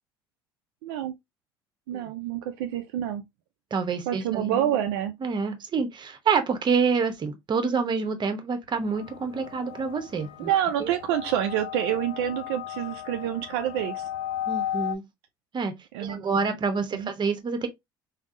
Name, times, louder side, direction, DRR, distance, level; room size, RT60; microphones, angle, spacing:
voice 1, 0.8-1.1 1.9-3.2 4.1-5.1 10.4-14.1 15.9-16.4 16.9-17.1, right 11 dB, 75° right, 0.4 m, -28 dB
voice 2, 3.7-4.7 5.2-10.5 10.8-10.9 14.5-15.0 15.5-15.7 16.0-17.7, right 5 dB, 40° right, 0.8 m, -27 dB
sound 1, 8.8-14.9, left 11 dB, 85° left, 0.4 m, -35 dB
3.4 x 2.0 x 2.5 m
hypercardioid pair, 60°, 12 cm